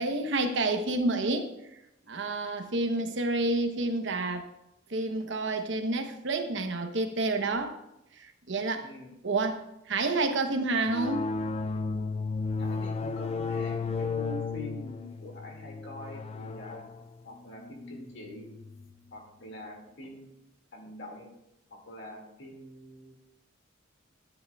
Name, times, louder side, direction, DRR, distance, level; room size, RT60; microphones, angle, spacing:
voice 1, 0.0-1.5 2.1-4.5 4.9-7.8 8.2-8.9 9.2-11.3, right 2 dB, 65° right, 6 dB, 0.9 m, -29 dB
voice 2, 8.8-9.1 12.6-16.8 17.2-18.5 19.1-20.3 20.7-21.3 21.7-23.1, left 1 dB, 65° left, 1 dB, 2.2 m, -44 dB
sound 1, 10.9-19.0, left 4 dB, 30° left, 0.3 m, -34 dB
13.0 x 9.2 x 2.3 m, 0.86 s
head